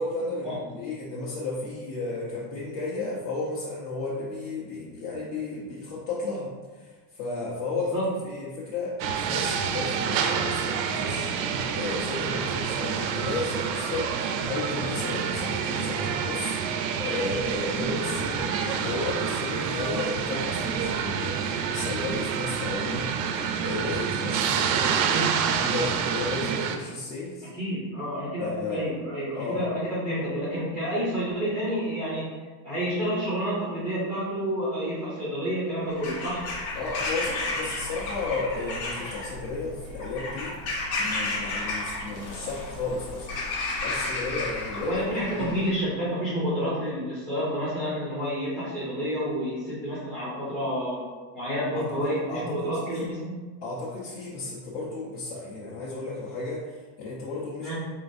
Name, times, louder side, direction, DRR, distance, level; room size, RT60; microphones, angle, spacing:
voice 1, 0.0-11.3 11.7-16.6 17.0-23.1 23.6-25.0 25.6-27.5 28.4-28.8 29.3-29.6 36.7-40.5 41.0-43.3 43.8-44.9 45.3-45.5 51.7-51.9 52.3-53.0 53.6-57.8, left 3 dB, 50° left, -7 dB, 1.0 m, -33 dB
sound 1, 9.0-26.8, right 7 dB, 85° right, 0.6 m, -28 dB
voice 2, 25.0-25.3 27.6-32.3 32.6-36.5 44.7-51.0 51.3-53.4 57.6-57.8, equal, 5° left, -9 dB, 0.4 m, -29 dB
Bird vocalization bird call bird song / Crow, 35.9-45.8, left 2 dB, 85° left, 1.4 m, -33 dB
4.3 x 3.7 x 2.6 m, 1.4 s
supercardioid pair, 165°, 49 cm